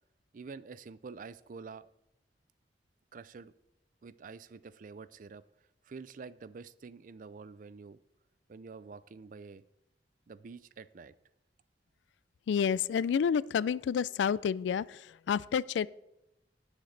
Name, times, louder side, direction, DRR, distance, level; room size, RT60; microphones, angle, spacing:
voice 1, 0.3-1.9 3.1-3.5 4.0-5.4 5.8-8.0 8.5-9.6 10.3-11.1, right 4 dB, 50° right, 17 dB, 0.4 m, -47 dB
voice 2, 12.5-15.9, left 7 dB, 90° left, 21 dB, 0.3 m, -29 dB
18.5 x 6.5 x 3.3 m, 0.89 s
head